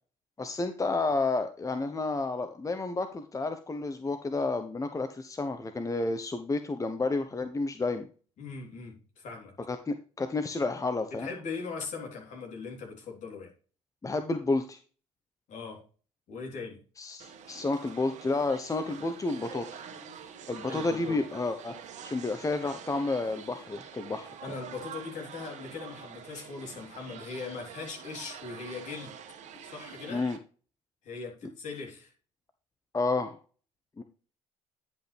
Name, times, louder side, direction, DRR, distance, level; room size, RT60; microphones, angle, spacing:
voice 1, 0.4-8.1 9.7-11.3 14.0-14.8 17.0-19.8 20.5-21.7 22.0-24.3 30.1-30.4 32.9-33.4 34.0-34.1, left 3 dB, 25° left, 1.0 m, -30 dB
voice 2, 8.4-9.5 11.2-13.5 15.5-15.8 16.3-16.8 20.7-21.2 24.4-29.2 29.6-30.3 31.0-32.1, left 4 dB, 55° left, 3.7 m, -40 dB
sound 1, 17.2-30.4, right 8 dB, 55° right, 1.6 m, -46 dB
10.5 x 5.7 x 3.4 m
hypercardioid pair, 60°, 15 cm